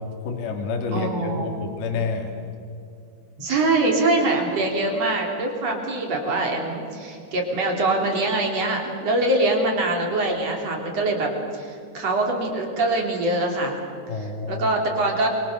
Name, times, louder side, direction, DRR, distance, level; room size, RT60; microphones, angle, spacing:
voice 1, 0.2-2.3 14.1-14.7, left 4 dB, 60° left, 3 dB, 4.5 m, -28 dB
voice 2, 0.9-1.6 3.4-13.8 14.1-15.3, right 2 dB, 35° right, 1 dB, 4.3 m, -24 dB
28.5 x 24.0 x 7.0 m, 2.5 s
omnidirectional pair, 5.3 m